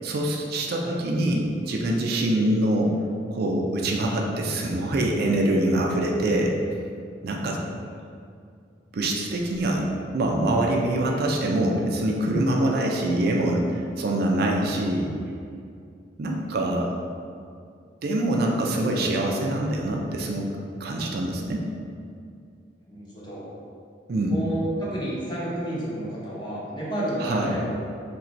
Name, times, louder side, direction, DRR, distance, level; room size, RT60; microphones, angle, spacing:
voice 1, 0.0-2.9 3.3-6.6 7.2-7.6 8.9-15.1 16.2-16.9 18.0-20.5 20.8-21.6 24.1-24.3 27.2-27.5, right 1 dB, 60° right, 0 dB, 0.4 m, -24 dB
voice 2, 22.8-23.5 24.3-27.9, right 1 dB, 25° left, -8 dB, 0.9 m, -31 dB
3.0 x 2.5 x 4.3 m, 2.4 s
head